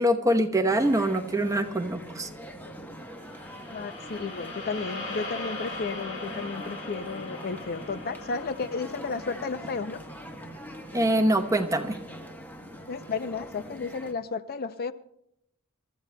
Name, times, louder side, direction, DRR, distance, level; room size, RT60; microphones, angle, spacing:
voice 1, 0.0-2.3 10.9-12.0, right 1 dB, 15° right, 0.9 m, -24 dB
sound 1, 0.7-14.1, equal, 10° left, 1.1 m, -43 dB
sound 2, 3.1-11.5, left 2 dB, 75° left, 3.7 m, -40 dB
voice 2, 3.7-10.0 12.9-14.9, left 4 dB, 45° left, 0.5 m, -33 dB
27.5 x 13.5 x 2.3 m
head